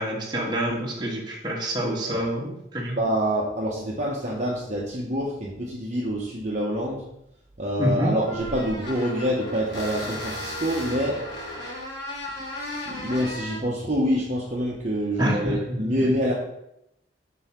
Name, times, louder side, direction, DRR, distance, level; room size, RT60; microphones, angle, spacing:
voice 1, 0.0-3.0 7.8-8.1 15.2-15.8, right 1 dB, 25° right, -2 dB, 1.3 m, -27 dB
voice 2, 3.0-7.0 7.6-11.2 12.8-16.3, equal, 40° right, -4 dB, 0.9 m, -26 dB
sound 1, 7.6-7.7 8.2-13.6, left 1 dB, 75° left, 2.3 m, -35 dB
5.5 x 4.1 x 5.8 m, 0.82 s
head